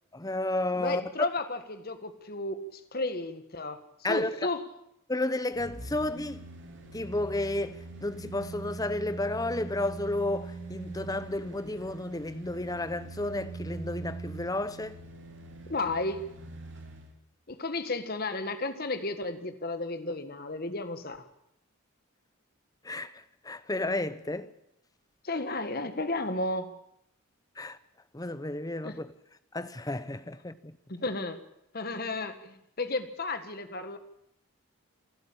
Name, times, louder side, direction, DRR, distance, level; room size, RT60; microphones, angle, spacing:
voice 1, 0.1-1.3 4.0-4.3 5.1-6.4 6.9-15.0 22.8-23.1 23.4-24.5 27.6-27.8 28.1-29.1 29.5-30.8, left 2 dB, 15° left, 0.8 m, -32 dB
voice 2, 0.7-4.7 15.7-16.2 17.5-21.2 25.2-26.7 28.8-29.0 30.9-31.4 31.7-34.0, left 2 dB, 45° left, 1.7 m, -33 dB
sound 1, 5.5-17.1 17.5-17.6, right 3 dB, 55° right, 3.2 m, -43 dB
28.0 x 12.0 x 8.7 m
head